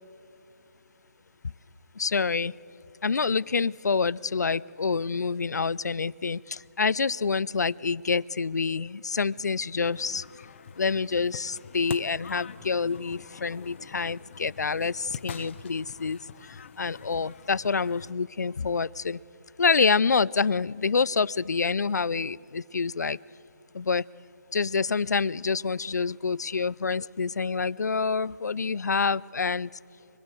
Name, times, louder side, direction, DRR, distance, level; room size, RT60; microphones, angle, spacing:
voice 1, 2.0-2.5 3.0-10.2 10.8-16.2 16.8-19.2 19.6-23.2 23.7-24.0 24.5-29.7, left 5 dB, 75° left, 22 dB, 0.4 m, -27 dB
sound 1, 9.8-18.1, left 7 dB, 45° left, 0.8 m, -44 dB
25.5 x 21.5 x 6.7 m, 2.9 s
figure-of-eight pair, 150°, 9 cm